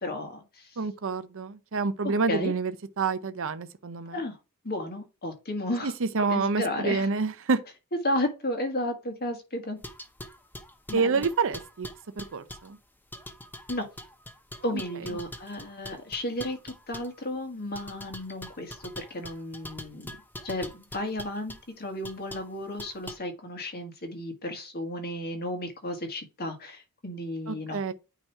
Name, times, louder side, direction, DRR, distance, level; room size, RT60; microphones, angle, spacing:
voice 1, 0.0-0.4 2.0-2.5 4.1-4.4 4.6-5.9 6.2-7.1 8.0-9.8 10.9-11.2 13.7-13.9 14.6-20.2 20.4-27.8, left 1 dB, 45° left, 1.7 m, -33 dB
voice 2, 0.8-2.7 3.0-4.2 5.8-7.6 10.9-11.9 12.2-12.8 27.5-27.9, right 4 dB, 60° right, 0.7 m, -28 dB
sound 1, 9.8-12.7 13.1-17.2 17.7-21.6 22.0-22.5 22.8-23.2, left 1 dB, 10° left, 0.8 m, -43 dB
8.9 x 3.0 x 4.8 m
head